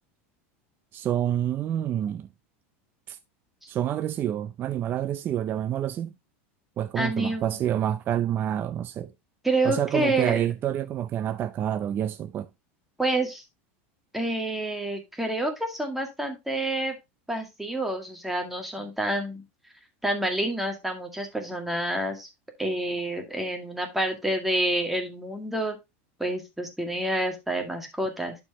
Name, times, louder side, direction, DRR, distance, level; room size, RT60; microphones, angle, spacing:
voice 1, 0.9-2.3 3.1-3.2 3.7-6.1 6.8-9.1 9.6-12.5, right 11 dB, 30° right, 0.5 m, -28 dB
voice 2, 7.0-7.6 9.4-10.4 13.0-13.4 14.1-17.0 17.3-19.4 20.0-22.3 22.6-25.8 26.2-28.4, right 1 dB, 5° right, 2.0 m, -28 dB
11.5 x 4.6 x 2.8 m
supercardioid pair, 140°, 7 cm